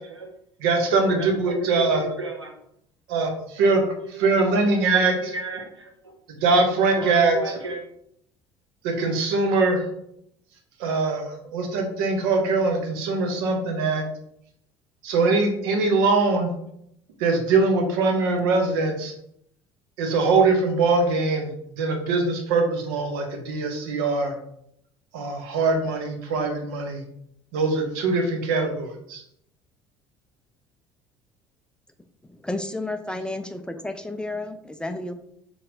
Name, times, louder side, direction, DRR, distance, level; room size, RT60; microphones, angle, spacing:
voice 1, 0.6-2.0 3.1-3.8 4.1-5.4 6.3-7.4 8.8-9.8 10.8-14.0 15.0-16.5 17.2-19.1 20.0-24.3 25.1-27.0 27.5-29.2, right 3 dB, 60° right, 4 dB, 0.9 m, -22 dB
voice 2, 1.2-2.6 3.6-3.8 4.1-4.3 4.7-6.1 7.0-7.8, right 3 dB, 85° right, 3 dB, 0.5 m, -34 dB
voice 3, 32.3-35.1, left 2 dB, 5° left, 7 dB, 0.4 m, -31 dB
5.6 x 3.1 x 2.7 m, 0.73 s
figure-of-eight pair, 60°, 14 cm